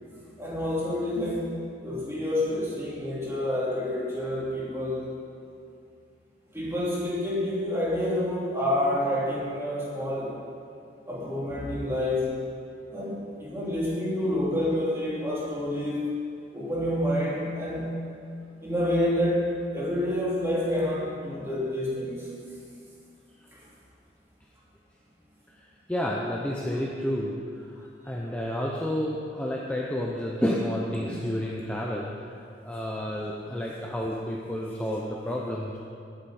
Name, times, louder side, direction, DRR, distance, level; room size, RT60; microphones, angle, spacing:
voice 1, 0.4-5.2 6.5-10.3 11.0-12.4 12.9-16.1 16.5-18.0 18.6-22.3 23.5-23.6, left 1 dB, 15° right, -7 dB, 3.1 m, -28 dB
voice 2, 25.9-32.1 32.6-35.8, equal, 10° left, -3 dB, 0.9 m, -30 dB
19.5 x 8.2 x 4.4 m, 2.5 s
head